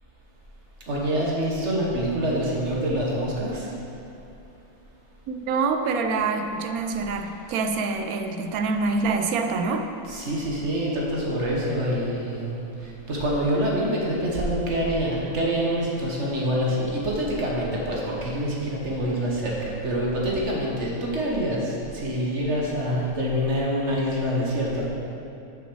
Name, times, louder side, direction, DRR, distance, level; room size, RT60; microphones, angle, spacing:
voice 1, 0.9-3.7 10.1-24.9, equal, 55° right, -3 dB, 1.6 m, -26 dB
voice 2, 5.3-9.8, right 4 dB, 85° right, 6 dB, 1.1 m, -26 dB
6.7 x 6.1 x 6.3 m, 2.7 s
omnidirectional pair, 1.5 m